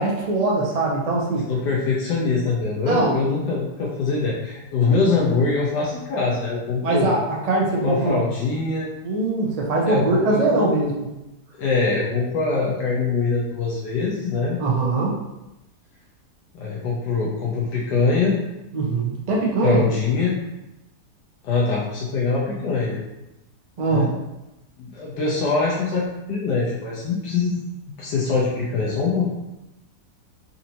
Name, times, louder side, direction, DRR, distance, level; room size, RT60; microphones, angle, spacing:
voice 1, 0.0-1.4 2.8-3.1 6.8-7.2 7.5-8.2 9.0-10.9 14.6-15.1 18.7-19.8 23.8-24.1, right 3 dB, 70° right, -3 dB, 0.3 m, -21 dB
voice 2, 1.5-7.1 7.8-8.9 9.8-10.7 11.6-14.6 16.5-18.4 19.6-20.4 21.4-23.0 23.9-24.2 24.8-27.6 27.9-29.2, left 4 dB, 80° left, -5 dB, 1.3 m, -23 dB
4.1 x 2.6 x 2.8 m, 0.95 s
omnidirectional pair, 1.8 m